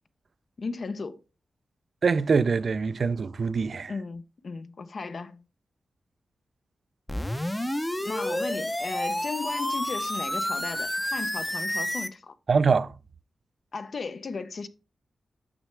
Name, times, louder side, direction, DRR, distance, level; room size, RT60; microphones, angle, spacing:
voice 1, 0.6-1.2 3.9-5.4 7.5-12.3 13.7-14.7, left 4 dB, 55° left, 0.5 m, -36 dB
voice 2, 2.0-3.9 12.5-12.9, right 5 dB, 60° right, 0.3 m, -24 dB
sound 1, 7.1-12.1, left 1 dB, 10° left, 0.5 m, -30 dB
6.4 x 6.0 x 3.2 m
wide cardioid pair, 90°, 0 cm